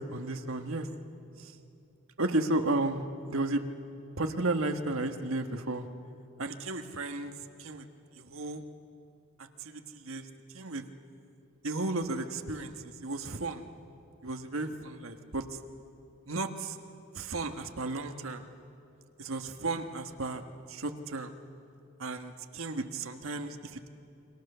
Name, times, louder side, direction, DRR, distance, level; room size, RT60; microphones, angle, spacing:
voice 1, 0.1-0.9 1.4-1.5 2.2-3.6 4.2-5.9 6.4-7.3 7.6-7.8 8.2-8.6 9.6-10.2 10.5-10.8 11.6-13.6 14.2-15.4 16.3-16.7 17.1-18.5 19.2-20.4 20.7-21.3 22.0-23.9, right 2 dB, 75° right, 6 dB, 1.5 m, -33 dB
28.5 x 24.5 x 6.8 m, 2.7 s
head